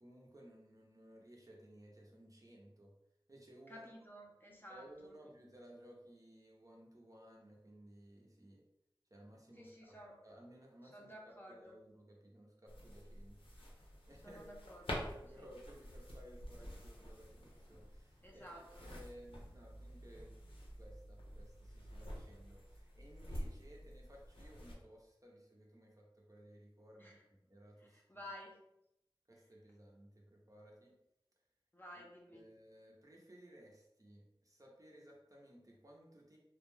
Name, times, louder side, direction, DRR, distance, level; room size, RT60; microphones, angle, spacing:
voice 1, 0.0-2.9 3.3-4.1 4.7-8.6 9.1-10.0 10.2-13.4 13.8-14.4 14.8-20.3 20.8-28.3 29.3-30.9 31.9-36.4, right 1 dB, 40° right, -2 dB, 0.6 m, -59 dB
voice 2, 3.7-5.2 9.6-10.2 10.9-11.8 14.2-15.1 15.4-15.5 18.2-18.8 27.0-27.2 27.8-28.6 31.7-32.4, equal, 20° left, -2 dB, 0.6 m, -53 dB
sound 1, 12.7-24.7, equal, 80° left, 0.6 m, -49 dB
2.3 x 2.2 x 3.1 m, 0.82 s
wide cardioid pair, 45°, 9 cm